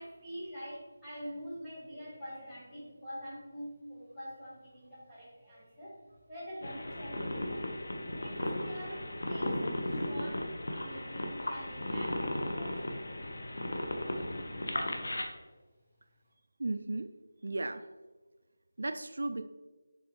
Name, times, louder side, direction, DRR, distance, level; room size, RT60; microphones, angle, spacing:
voice 1, 0.0-6.0 6.3-7.7 8.1-10.5 10.8-13.3 14.4-14.5, equal, ahead, -14 dB, 1.2 m, -45 dB
sound 1, 6.6-15.2, left 1 dB, 75° left, 0.9 m, -36 dB
voice 2, 16.6-17.1 17.4-17.8 18.8-19.5, right 2 dB, 70° right, 9 dB, 0.3 m, -35 dB
7.2 x 4.1 x 3.2 m, 1.3 s
figure-of-eight pair, 175°, 0 cm